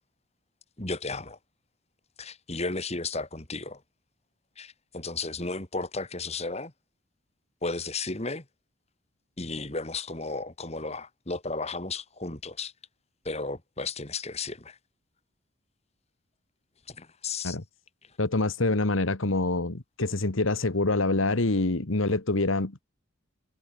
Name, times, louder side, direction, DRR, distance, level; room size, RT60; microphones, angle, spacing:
voice 1, 0.8-1.4 2.2-3.8 4.6-6.7 7.6-8.4 9.4-12.7 13.2-14.8 16.9-17.6, left 3 dB, 30° left, 2.7 m, -34 dB
voice 2, 18.2-22.8, left 2 dB, 75° left, 1.6 m, -26 dB
head